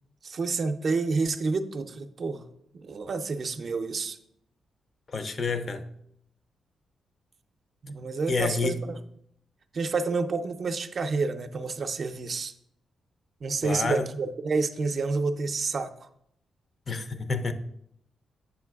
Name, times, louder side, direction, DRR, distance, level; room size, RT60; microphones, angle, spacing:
voice 1, 0.2-2.4 2.7-4.2 7.8-9.0 9.7-12.5 13.4-15.9, right 4 dB, 55° right, 0.4 m, -29 dB
voice 2, 5.1-5.8 8.3-8.9 13.6-14.1 16.9-17.5, left 4 dB, 50° left, 0.5 m, -29 dB
7.9 x 5.9 x 2.3 m
cardioid pair, 80°, 0 cm